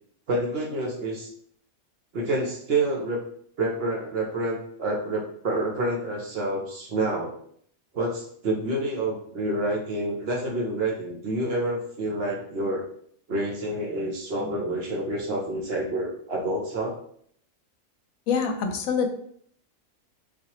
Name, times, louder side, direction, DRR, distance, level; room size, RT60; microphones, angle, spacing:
voice 1, 0.3-1.3 2.1-3.2 3.6-7.4 7.9-12.8 13.3-17.0, right 2 dB, 55° right, -1 dB, 0.8 m, -28 dB
voice 2, 18.3-19.1, left 6 dB, 80° left, 6 dB, 1.0 m, -25 dB
4.2 x 2.3 x 2.8 m, 0.64 s
omnidirectional pair, 1.4 m